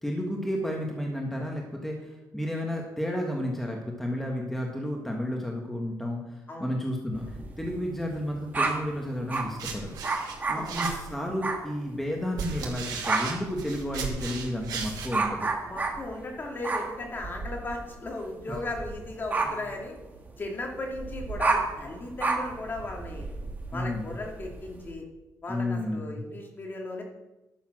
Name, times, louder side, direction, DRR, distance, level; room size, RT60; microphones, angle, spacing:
voice 1, 0.0-10.0 10.5-15.5 19.4-19.6 23.7-24.1 25.5-26.2, left 1 dB, 5° left, 0 dB, 1.5 m, -32 dB
sound 1, 7.1-9.5 10.0-11.7 12.0-12.3 12.5-24.9, right 3 dB, 25° right, 1.7 m, -32 dB
sound 2, 9.3-11.3 12.0-15.1, right 5 dB, 85° right, 2.6 m, -36 dB
voice 2, 15.6-20.0 20.4-23.3 23.7-25.0 25.4-27.0, left 2 dB, 30° left, 1 dB, 2.4 m, -36 dB
11.5 x 7.1 x 6.1 m, 1.0 s
cardioid pair, 135°, 7 cm